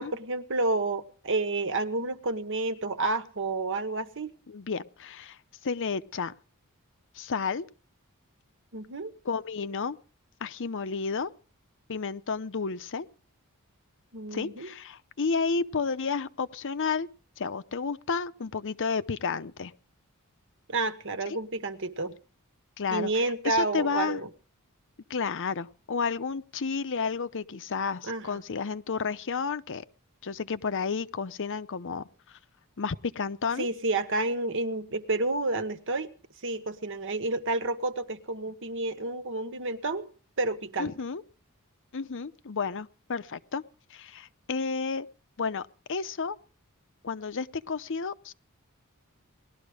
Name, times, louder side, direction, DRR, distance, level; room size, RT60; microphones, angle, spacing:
voice 1, 0.0-4.3 8.7-9.1 14.1-14.7 20.7-22.2 22.9-24.3 28.0-28.4 33.6-36.1 36.4-40.1 40.4-40.9, right 2 dB, 60° right, 1.4 m, -30 dB
voice 2, 4.5-6.3 7.1-7.6 9.2-10.0 10.4-11.3 11.9-13.1 14.3-17.1 17.4-19.7 21.3-21.4 22.8-24.2 25.1-29.8 30.2-32.4 32.8-33.7 40.8-41.2 41.9-43.6 43.9-45.1 45.4-46.4 47.0-48.3, left 5 dB, 60° left, 0.7 m, -31 dB
19.5 x 12.5 x 5.0 m
head